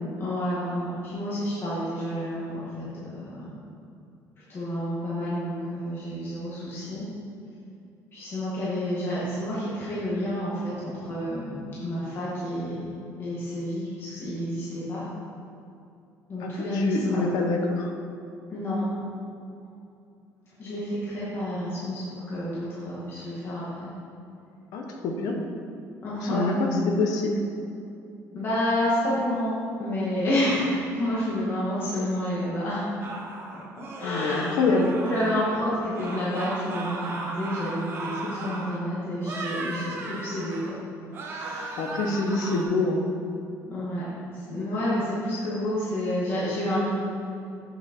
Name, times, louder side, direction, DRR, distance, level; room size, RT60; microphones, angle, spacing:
voice 1, 0.2-3.5 4.5-7.0 8.1-12.8 13.2-15.0 16.3-16.9 18.5-18.8 20.6-23.9 26.0-26.6 28.3-29.5 29.8-32.9 33.8-34.5 35.1-40.7 41.1-42.1 43.7-44.1 44.3-46.9, left 1 dB, 40° left, -9 dB, 2.2 m, -29 dB
voice 2, 16.4-17.9 24.7-25.4 26.2-27.4 34.0-34.9 41.8-43.1, left 3 dB, 80° left, 2 dB, 1.2 m, -26 dB
sound 1, 33.0-35.6 35.9-38.8 39.2-40.8 41.1-42.6, right 3 dB, 40° right, 1.2 m, -36 dB
8.8 x 6.6 x 4.6 m, 2.6 s
cardioid pair, 150°, 6 cm